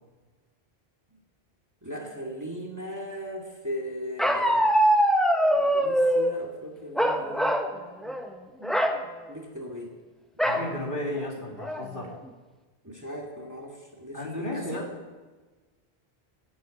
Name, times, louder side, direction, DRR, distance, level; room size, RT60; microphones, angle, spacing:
voice 1, 1.8-4.7 5.5-8.2 8.6-9.0 9.3-9.9 10.5-10.7 12.8-14.8, equal, 15° right, 0 dB, 2.1 m, -39 dB
Bark, 4.2-6.3 7.0-7.7 8.0-8.3 8.6-9.0 10.4-10.7 11.2-11.3 11.6-12.1, equal, ahead, 1.0 m, -23 dB
voice 2, 10.4-12.1 14.1-14.9, left 1 dB, 50° left, -1 dB, 3.0 m, -33 dB
15.5 x 8.5 x 8.3 m, 1.3 s
omnidirectional pair, 1.1 m